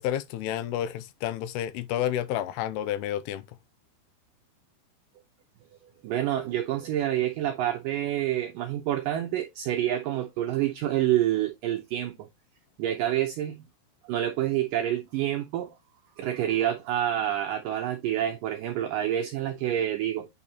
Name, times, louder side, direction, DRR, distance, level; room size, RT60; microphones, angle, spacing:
voice 1, 0.0-3.4, left 11 dB, 85° left, 2.6 m, -30 dB
voice 2, 6.0-12.2 12.8-13.7 14.1-15.7 16.2-20.3, right 12 dB, 85° right, 1.9 m, -28 dB
8.7 x 4.2 x 2.9 m
omnidirectional pair, 4.8 m